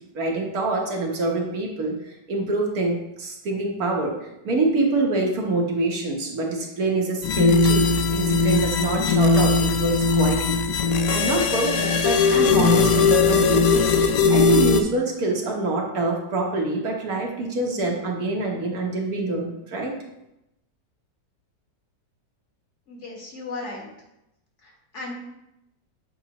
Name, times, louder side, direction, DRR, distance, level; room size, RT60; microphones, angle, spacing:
voice 1, 0.1-2.0 2.3-7.9 8.1-10.6 11.1-13.9 14.3-19.9, right 2 dB, 65° right, 0 dB, 1.6 m, -25 dB
sound 1, 7.2-14.8, left 4 dB, 70° left, 1.0 m, -19 dB
voice 2, 22.9-23.9 24.6-25.1, left 3 dB, 45° left, -2 dB, 1.9 m, -36 dB
8.2 x 5.2 x 2.9 m, 0.86 s
omnidirectional pair, 1.8 m